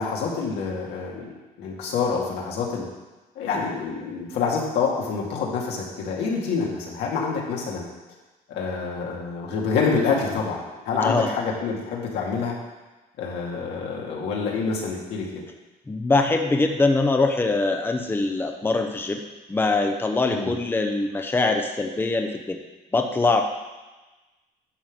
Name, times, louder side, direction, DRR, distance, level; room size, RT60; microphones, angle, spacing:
voice 1, 0.0-1.3 1.6-2.8 3.4-7.8 8.5-12.5 13.2-15.4 20.3-20.5, left 5 dB, 85° left, -2 dB, 2.2 m, -27 dB
voice 2, 15.9-19.2 19.5-22.6 22.9-23.4, left 3 dB, 15° left, 4 dB, 0.7 m, -23 dB
11.0 x 3.7 x 7.4 m, 1.1 s
cardioid pair, 110°, 17 cm